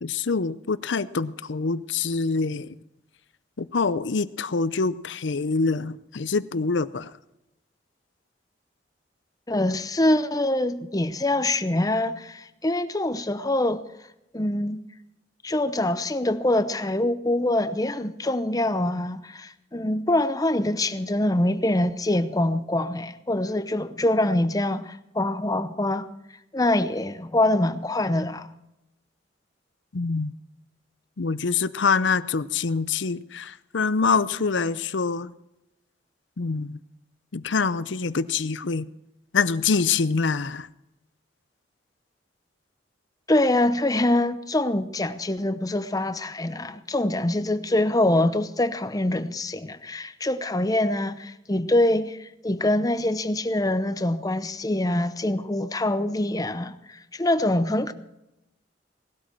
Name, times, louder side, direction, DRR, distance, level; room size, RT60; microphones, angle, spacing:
voice 1, 0.0-2.7 3.6-7.1 29.9-30.3 31.2-35.3 36.4-36.8 37.3-38.9 39.3-40.7, left 4 dB, 70° left, 0.6 m, -25 dB
voice 2, 9.5-13.8 14.3-14.8 15.4-26.1 26.5-28.5 43.3-57.9, left 1 dB, 20° left, 0.8 m, -24 dB
18.5 x 12.5 x 4.5 m
head